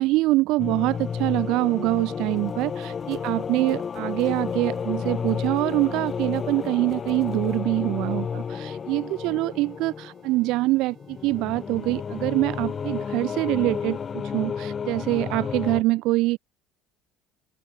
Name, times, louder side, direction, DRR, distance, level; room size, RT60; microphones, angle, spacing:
voice 1, 0.0-16.4, right 20 dB, 70° right, 0.5 m, -25 dB
sound 1, 0.6-15.8, left 6 dB, 35° left, 0.7 m, -31 dB
sound 2, 0.9-14.2, right 9 dB, 45° right, 6.5 m, -59 dB
sound 3, 2.2-7.6, right 5 dB, 30° right, 3.4 m, -57 dB
supercardioid pair, 105°, 0 cm